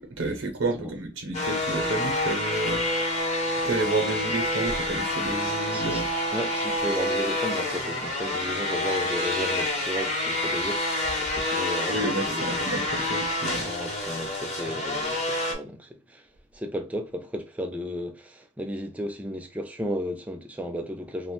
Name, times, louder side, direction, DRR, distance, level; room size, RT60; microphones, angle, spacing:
voice 1, 0.2-2.8 3.6-6.1 11.9-13.7, right 2 dB, 85° right, 0.6 m, -30 dB
sound 1, 1.3-15.5, left 1 dB, 35° left, 0.7 m, -28 dB
voice 2, 5.7-12.9 13.6-21.3, equal, 10° right, 0.4 m, -34 dB
2.8 x 2.1 x 3.0 m
head